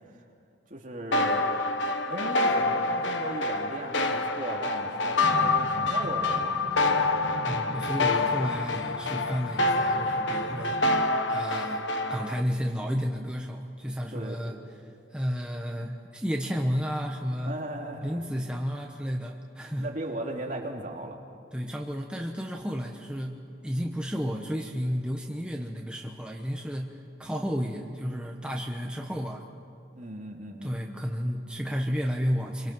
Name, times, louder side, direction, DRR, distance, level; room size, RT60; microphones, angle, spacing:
voice 1, 0.7-1.5 2.1-6.7 14.1-14.4 17.4-18.2 19.8-21.2 29.9-30.8, right 1 dB, 45° right, 0 dB, 2.8 m, -37 dB
sound 1, 1.1-12.4, left 2 dB, 80° left, 1.2 m, -27 dB
sound 2, 5.2-11.0, right 1 dB, 60° right, 1.3 m, -41 dB
voice 2, 7.4-10.9 11.3-11.8 12.1-14.6 15.1-17.6 18.0-19.9 21.5-26.9 27.2-29.5 30.6-32.7, equal, 5° right, 0 dB, 1.1 m, -32 dB
27.0 x 24.0 x 6.2 m, 2.4 s
head